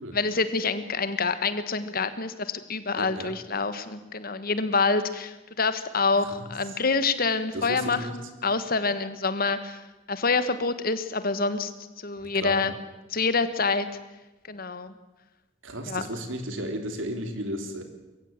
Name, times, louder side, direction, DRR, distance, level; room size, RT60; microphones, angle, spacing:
voice 1, 0.1-8.0 8.4-9.8 10.1-11.7 12.0-12.7 13.1-13.9 14.5-14.9 15.9-16.1, left 4 dB, 50° left, 12 dB, 1.5 m, -26 dB
voice 2, 3.0-3.4 6.2-6.8 7.5-8.2 12.1-12.7 15.6-17.8, right 1 dB, 80° right, 6 dB, 3.2 m, -34 dB
22.5 x 15.5 x 9.0 m, 1.1 s
head